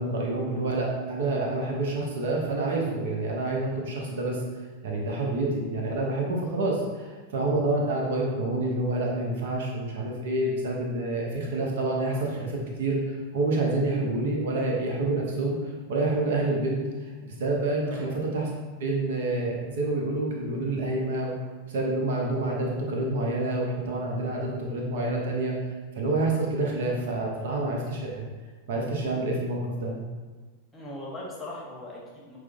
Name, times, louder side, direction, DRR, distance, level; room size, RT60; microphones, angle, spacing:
voice 1, 0.0-4.4 4.8-15.6 15.9-16.8 17.2-18.5 18.8-21.3 21.7-25.5 25.9-28.3 28.7-29.9, right 2 dB, 60° right, -1 dB, 0.7 m, -28 dB
voice 2, 30.7-32.4, left 1 dB, 10° left, -4 dB, 0.9 m, -39 dB
5.9 x 2.1 x 2.4 m, 1.3 s
figure-of-eight pair, 90°, 0 cm